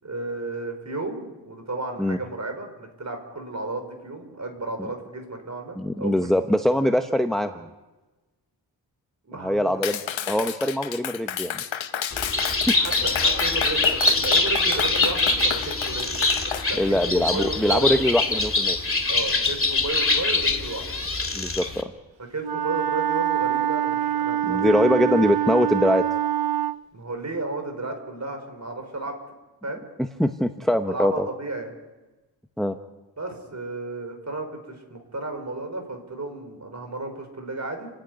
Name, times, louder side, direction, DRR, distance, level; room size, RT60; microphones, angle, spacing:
voice 1, 0.0-6.4 9.3-9.8 12.7-16.1 16.7-17.9 19.1-20.9 22.3-24.8 26.9-29.2 29.6-29.9 30.9-31.7 33.2-37.9, right 2 dB, 40° right, 4 dB, 5.5 m, -33 dB
voice 2, 5.8-7.7 9.4-10.0 10.3-11.6 12.7-12.8 16.8-18.8 21.3-21.9 24.5-26.0 30.2-31.3 32.6-32.7, left 1 dB, ahead, 7 dB, 1.0 m, -22 dB
Clapping, 9.8-16.7, left 9 dB, 85° left, 1.1 m, -31 dB
Bird, 12.1-21.8, left 3 dB, 30° left, 2.5 m, -24 dB
Wind instrument woodwind instrument, 22.4-26.8, right 11 dB, 55° right, 0.6 m, -25 dB
30.0 x 10.5 x 9.7 m, 1.1 s
cardioid pair, 75°, 45 cm